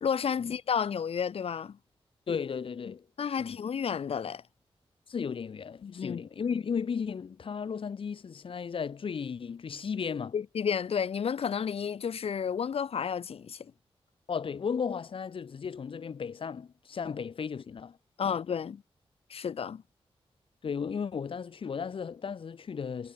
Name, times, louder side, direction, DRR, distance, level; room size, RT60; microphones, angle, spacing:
voice 1, 0.0-1.8 3.2-4.4 5.8-6.2 10.3-13.7 18.2-18.8 19.3-19.8, left 7 dB, 80° left, 2.1 m, -31 dB
voice 2, 2.3-3.1 3.4-3.6 5.1-10.4 14.3-18.0 18.2-18.4 20.6-23.1, left 6 dB, 60° left, 2.5 m, -35 dB
wide cardioid pair, 165°, 10 cm